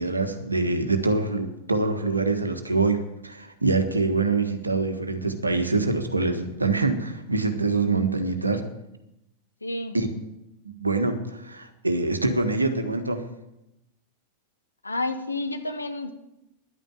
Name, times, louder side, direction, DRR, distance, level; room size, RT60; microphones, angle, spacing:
voice 1, 0.0-8.6 9.9-10.1 10.8-13.2, right 3 dB, 80° right, 7 dB, 1.4 m, -25 dB
voice 2, 9.6-10.0 14.8-16.1, left 2 dB, 80° left, 7 dB, 1.2 m, -30 dB
10.5 x 9.1 x 9.0 m, 0.89 s
figure-of-eight pair, 90°, 0 cm